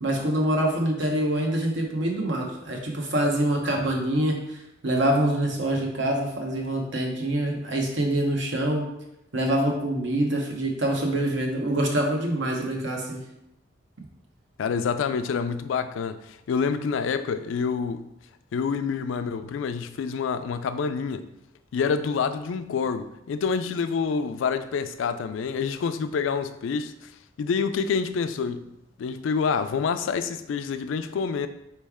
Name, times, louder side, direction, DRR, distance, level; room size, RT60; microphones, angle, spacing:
voice 1, 0.0-8.9 9.3-13.2, right 1 dB, 65° right, 1 dB, 0.9 m, -25 dB
voice 2, 14.6-18.1 18.5-21.3 21.7-27.1 27.4-28.7 29.0-31.5, left 5 dB, 75° left, 10 dB, 0.3 m, -27 dB
4.5 x 3.2 x 3.5 m, 0.85 s
head